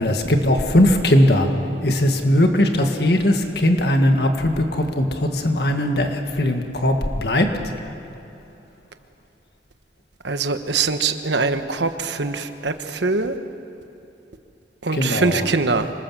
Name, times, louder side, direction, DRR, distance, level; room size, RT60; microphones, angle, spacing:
voice 1, 0.0-1.5 1.8-7.6 14.9-15.5, left 1 dB, 65° left, 5 dB, 1.9 m, -19 dB
voice 2, 10.2-13.4 14.8-15.9, right 4 dB, 85° right, 8 dB, 1.2 m, -23 dB
26.0 x 19.5 x 7.5 m, 2.9 s
head